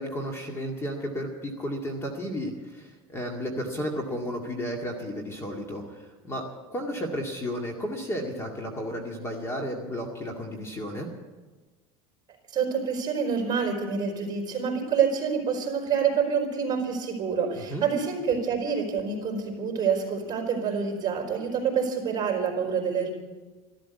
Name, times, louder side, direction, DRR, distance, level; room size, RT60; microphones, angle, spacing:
voice 1, 0.0-6.4 6.7-11.1 17.5-17.8, equal, 20° left, 1 dB, 2.1 m, -33 dB
voice 2, 12.5-23.1, right 6 dB, 30° right, 0 dB, 4.2 m, -27 dB
13.5 x 13.0 x 8.2 m, 1.3 s
supercardioid pair, 135°, 14 cm